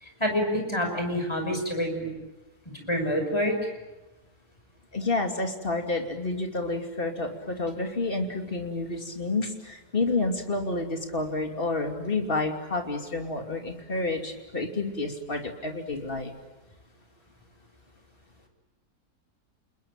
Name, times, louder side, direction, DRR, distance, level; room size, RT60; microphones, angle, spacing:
voice 1, 0.0-2.1 2.9-3.5, equal, 15° left, 3 dB, 6.1 m, -27 dB
voice 2, 4.9-16.3, left 2 dB, 35° left, 4 dB, 3.0 m, -29 dB
28.5 x 21.0 x 8.9 m, 1.1 s
omnidirectional pair, 1.6 m